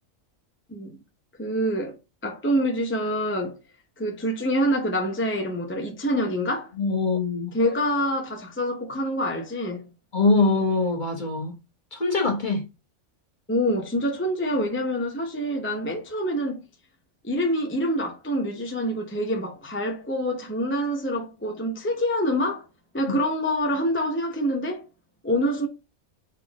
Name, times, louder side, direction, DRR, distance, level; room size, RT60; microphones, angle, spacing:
voice 1, 1.4-3.6 4.0-6.7 7.5-9.9 13.5-16.6 17.2-22.7 22.9-24.9 25.2-25.7, equal, 10° left, 0.7 m, -26 dB
voice 2, 6.8-7.5 10.1-11.5 11.9-12.6 23.1-23.2, left 3 dB, 40° left, 1.5 m, -23 dB
4.2 x 4.2 x 2.9 m
omnidirectional pair, 1.2 m